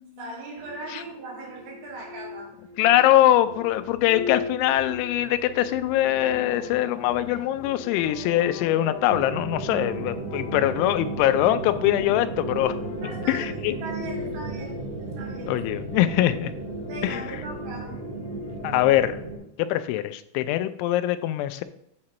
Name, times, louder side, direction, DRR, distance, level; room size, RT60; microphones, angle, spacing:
voice 1, 0.2-2.5 2.9-3.0 7.3-7.4 8.2-8.5 13.0-15.6 16.9-18.0, right 2 dB, 85° right, -2 dB, 4.7 m, -39 dB
sound 1, 0.6-19.5, left 5 dB, 40° left, 3.1 m, -40 dB
voice 2, 2.8-12.8 13.3-13.7 15.5-16.5 17.0-17.2 18.6-19.2 19.6-21.6, left 13 dB, 90° left, 11 dB, 3.0 m, -22 dB
sound 2, 5.6-13.5, left 5 dB, 70° left, 3.5 m, -43 dB
sound 3, 9.1-19.4, right 3 dB, 55° right, 1.8 m, -35 dB
8.6 x 7.4 x 3.0 m, 0.75 s
omnidirectional pair, 5.4 m